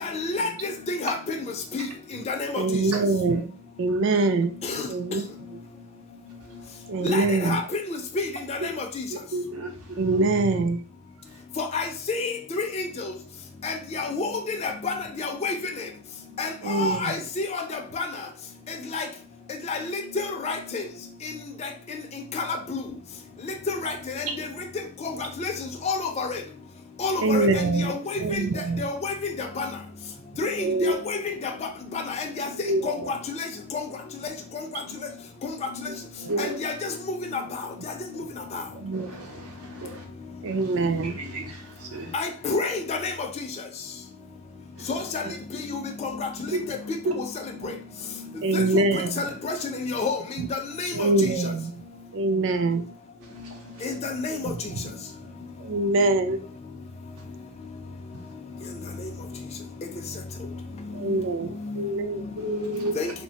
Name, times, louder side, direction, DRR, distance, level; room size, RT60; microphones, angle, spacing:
voice 1, 0.0-1.2 1.7-1.9 2.3-2.6 4.7-4.9 7.0-7.6 7.9-9.0 11.6-12.8 13.6-14.9 15.2-15.6 16.4-17.6 18.0-18.1 18.9-19.1 19.7-20.8 22.3-22.8 23.7-24.5 25.0-25.1 25.4-25.5 25.8-26.4 27.0-27.5 27.8-28.0 28.3-28.4 28.8-29.7 30.4-31.5 31.9-32.5 32.8-33.2 36.4-36.9 37.3-37.4 38.5-38.6 42.1-43.3 44.9-45.2 45.6-46.3 46.7-46.8 48.5-48.8 49.2-50.2 50.5-51.3 53.8-54.5 63.0-63.1, left 4 dB, 30° left, 0.3 m, -29 dB
voice 2, 2.6-3.5 3.8-4.5 4.9-5.2 6.9-7.6 10.0-10.8 16.6-17.2 27.2-28.9 30.6-31.1 32.6-33.1 36.2-36.4 38.7-39.3 40.4-41.2 48.4-49.2 50.4-50.5 50.9-51.7 52.1-52.8 54.4-54.8 55.6-56.4 60.9-62.3, right 2 dB, 55° right, 0.3 m, -24 dB
voice 3, 9.3-10.3 36.3-36.5 39.8-39.9 41.2-41.4 41.9-42.1 46.5-46.6 62.4-63.0, right 2 dB, 85° right, 0.7 m, -29 dB
3.1 x 2.1 x 2.7 m
head